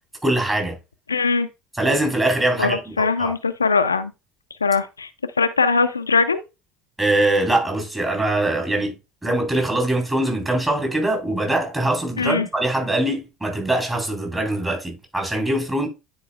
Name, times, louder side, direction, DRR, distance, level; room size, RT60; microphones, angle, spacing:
voice 1, 0.2-0.7 1.8-3.3 7.0-9.0 9.2-15.9, right 1 dB, 15° right, 3.8 m, -22 dB
voice 2, 1.1-1.5 2.6-4.1 4.6-5.1 5.4-6.4 12.2-12.5, left 4 dB, 85° left, 0.4 m, -20 dB
10.0 x 4.6 x 2.3 m
figure-of-eight pair, 65°, 0 cm